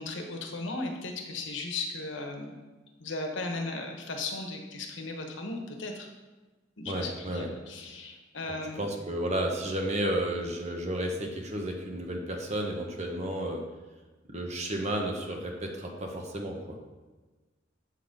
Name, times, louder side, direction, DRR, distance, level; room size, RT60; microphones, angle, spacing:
voice 1, 0.0-2.5 3.0-6.1 6.8-8.8, left 2 dB, 75° left, 3 dB, 1.0 m, -36 dB
voice 2, 6.8-7.5 8.7-13.6 14.3-16.8, right 1 dB, 35° right, 2 dB, 1.0 m, -32 dB
7.5 x 4.0 x 5.1 m, 1.2 s
head